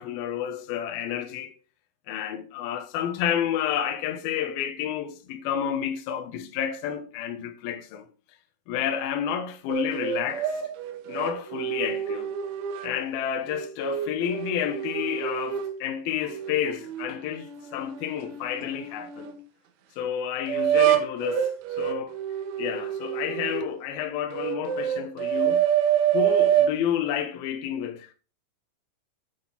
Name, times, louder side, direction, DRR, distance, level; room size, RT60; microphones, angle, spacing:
voice 1, 0.0-1.5 2.1-8.1 8.7-10.6 11.1-12.3 12.8-19.3 20.0-22.2 22.6-25.6 26.1-28.1, left 9 dB, 70° left, 2.4 m, -30 dB
sound 1, 9.7-13.0 13.5-15.8 16.3-19.4 20.5-23.7 24.3-26.8, right 10 dB, 80° right, 3.4 m, -27 dB
8.7 x 7.7 x 4.5 m
omnidirectional pair, 5.5 m